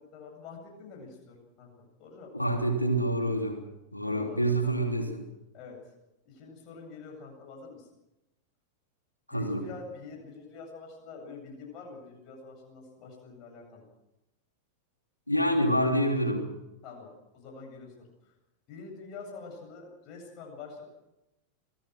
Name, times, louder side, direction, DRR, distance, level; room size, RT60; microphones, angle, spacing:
voice 1, 0.1-2.3 4.1-4.8 5.5-5.8 6.2-7.9 9.3-13.9 16.8-17.9 18.7-20.8, left 4 dB, 40° left, 1 dB, 8.0 m, -46 dB
voice 2, 2.3-3.6 3.9-5.3 9.3-9.7 15.3-16.5, right 1 dB, 85° left, 4 dB, 3.5 m, -27 dB
26.5 x 19.5 x 6.3 m, 0.92 s
figure-of-eight pair, 90°, 0 cm